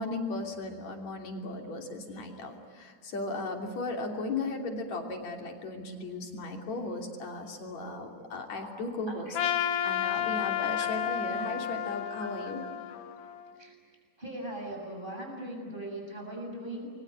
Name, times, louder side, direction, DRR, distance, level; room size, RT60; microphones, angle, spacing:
voice 1, 0.0-9.4 9.8-12.6, left 2 dB, 60° left, 2 dB, 4.3 m, -36 dB
voice 2, 8.5-8.8 9.1-9.4 10.3-11.0 12.2-12.3 13.6-13.8 14.2-16.9, right 1 dB, 15° right, 2 dB, 7.2 m, -40 dB
Trumpet, 9.3-13.6, left 10 dB, 90° left, 2.8 m, -32 dB
29.0 x 22.5 x 8.8 m, 2.1 s
omnidirectional pair, 3.5 m